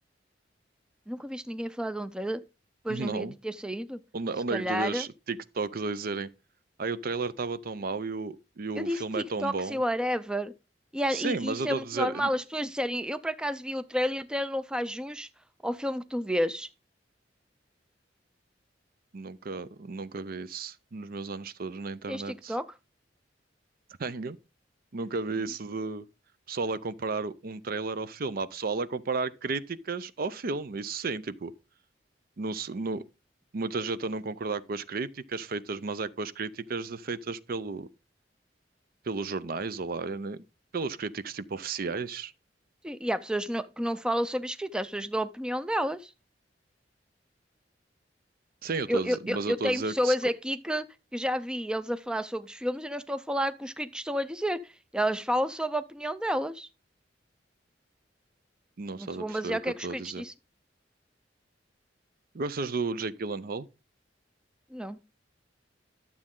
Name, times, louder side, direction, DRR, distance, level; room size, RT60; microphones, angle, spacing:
voice 1, 1.1-2.4 2.8-4.0 4.5-5.1 8.8-10.5 10.9-15.3 15.6-16.7 22.1-22.7 42.8-46.1 48.9-50.9 51.1-54.6 54.9-56.7 59.0-60.3 64.7-65.0, equal, 5° right, 0.4 m, -30 dB
voice 2, 2.9-3.3 4.1-6.3 6.8-9.8 11.1-12.3 19.1-22.6 24.0-24.4 24.9-26.0 26.5-31.5 32.4-33.0 33.5-37.9 39.0-40.4 40.7-42.3 48.6-50.2 58.8-60.2 62.3-63.7, right 4 dB, 55° right, 0.5 m, -33 dB
12.0 x 7.3 x 3.7 m
head